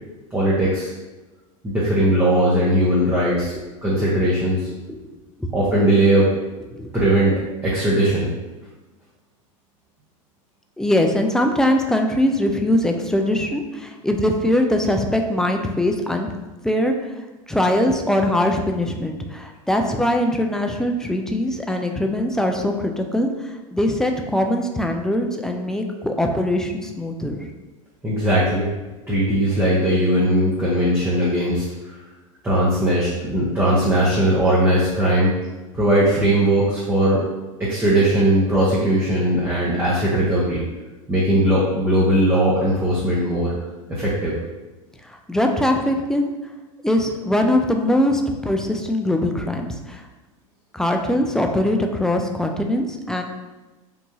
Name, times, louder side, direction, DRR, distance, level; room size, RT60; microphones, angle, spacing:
voice 1, 0.3-0.9 1.6-3.5 3.8-4.7 5.5-6.3 6.9-8.3 28.0-28.7 29.1-32.0 32.4-35.3 35.7-37.2 37.6-40.6 41.1-43.5 43.9-44.3, right 1 dB, 15° right, -8 dB, 0.8 m, -19 dB
voice 2, 10.8-16.3 16.6-27.5 45.0-46.3 46.8-50.0 50.7-53.2, left 1 dB, 5° left, 3 dB, 0.3 m, -22 dB
3.5 x 2.5 x 2.9 m, 1.2 s
hypercardioid pair, 105°, 18 cm